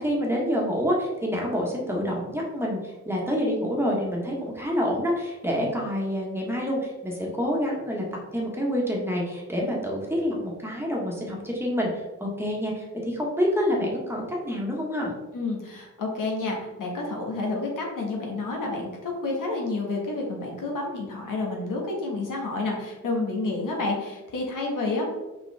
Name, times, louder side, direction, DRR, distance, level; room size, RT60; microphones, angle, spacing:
voice 1, 0.0-8.0 8.3-15.1, equal, 10° right, -3 dB, 1.3 m, -27 dB
voice 2, 15.3-25.1, left 3 dB, 85° left, -1 dB, 1.6 m, -29 dB
5.3 x 5.1 x 3.4 m, 1.1 s
wide cardioid pair, 140°, 31 cm